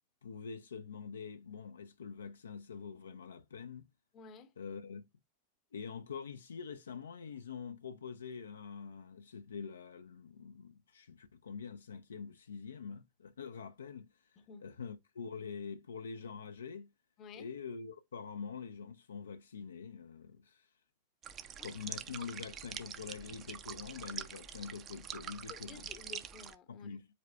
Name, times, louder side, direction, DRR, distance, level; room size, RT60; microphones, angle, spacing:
voice 1, 0.2-3.9 4.6-5.1 5.7-16.9 17.3-20.7 21.6-25.9 26.7-27.1, left 6 dB, 70° left, 0.3 m, -45 dB
voice 2, 4.1-4.5 14.4-14.7 17.2-17.5 21.6-21.7 25.5-26.9, left 6 dB, 30° left, 0.6 m, -52 dB
sound 1, 21.2-26.5, right 8 dB, 30° right, 0.5 m, -45 dB
5.0 x 3.2 x 2.3 m
figure-of-eight pair, 90°, 0 cm